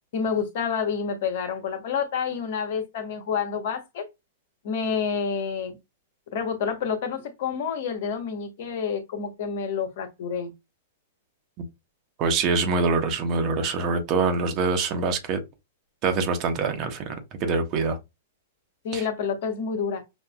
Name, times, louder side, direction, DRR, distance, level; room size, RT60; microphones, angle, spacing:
voice 1, 0.1-4.0 4.6-5.7 6.3-10.5 18.8-20.0, left 6 dB, 60° left, 1.1 m, -28 dB
voice 2, 12.2-15.4 16.0-18.0 18.9-19.1, right 4 dB, 40° right, 1.1 m, -25 dB
6.3 x 2.6 x 2.3 m
hypercardioid pair, 110°, 0 cm